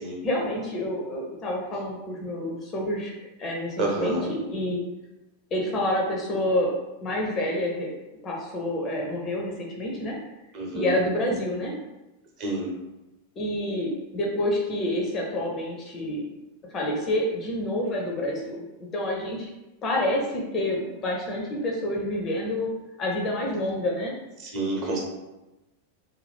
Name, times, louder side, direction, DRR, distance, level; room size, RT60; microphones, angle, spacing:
voice 1, 0.2-4.8 5.5-6.8 7.0-7.9 8.2-10.2 10.7-11.7 13.4-16.2 16.7-19.5 19.8-22.7 23.0-24.1, left 1 dB, 30° left, -1 dB, 0.5 m, -28 dB
voice 2, 3.8-4.3 10.5-10.9 12.4-12.7 24.4-25.0, right 2 dB, 40° right, -2 dB, 0.8 m, -28 dB
2.6 x 2.2 x 3.4 m, 1.0 s
figure-of-eight pair, 90°, 0 cm